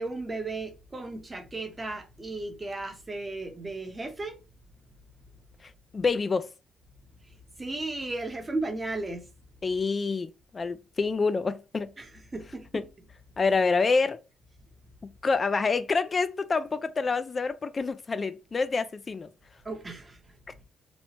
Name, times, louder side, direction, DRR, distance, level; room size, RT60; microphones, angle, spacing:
voice 1, 0.0-4.4 7.6-9.3 12.0-12.8 19.6-20.2, right 2 dB, 25° right, 0.8 m, -35 dB
voice 2, 5.6-6.5 9.6-11.9 12.7-12.8 13.4-14.2 15.2-19.3, left 4 dB, 35° left, 0.3 m, -27 dB
3.0 x 2.1 x 2.8 m
cardioid pair, 90°, 0 cm